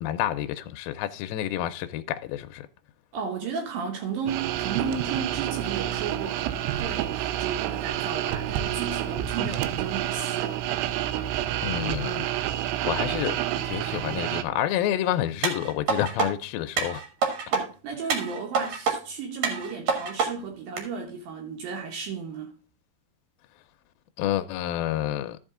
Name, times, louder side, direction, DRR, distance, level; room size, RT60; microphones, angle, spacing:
voice 1, 0.0-2.7 11.6-12.3 12.8-13.4 13.6-17.0 24.2-25.4, left 12 dB, 80° left, 2.2 m, -29 dB
voice 2, 3.1-10.7 11.7-11.9 17.5-22.5, right 5 dB, 70° right, 2.6 m, -34 dB
sound 1, 4.3-14.4, right 12 dB, 90° right, 2.7 m, -29 dB
sound 2, 15.4-16.3 16.8-17.6 18.1-19.0 19.4-20.3 20.8-20.9, right 5 dB, 55° right, 2.6 m, -26 dB
13.5 x 5.4 x 3.7 m
omnidirectional pair, 4.7 m